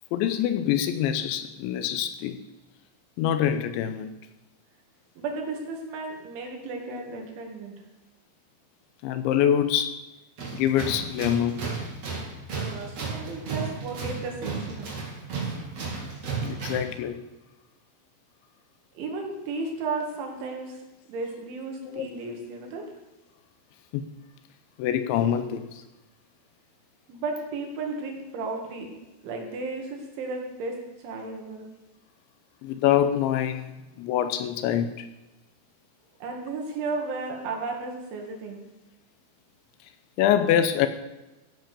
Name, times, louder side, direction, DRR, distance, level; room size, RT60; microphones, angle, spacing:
voice 1, 0.1-2.4 3.2-4.2 9.0-10.0 10.5-11.6 16.4-17.2 21.8-22.1 23.9-24.0 24.8-25.8 32.6-35.1 40.2-40.9, left 10 dB, 80° left, 10 dB, 2.9 m, -25 dB
voice 2, 5.2-7.8 12.6-14.9 19.0-20.8 21.1-22.8 27.1-30.8 31.0-31.7 36.2-38.6, right 3 dB, 75° right, 1 dB, 4.6 m, -34 dB
Tools, 10.4-17.0, right 4 dB, 35° right, 3.9 m, -33 dB
15.0 x 10.5 x 6.9 m, 1.0 s
omnidirectional pair, 5.5 m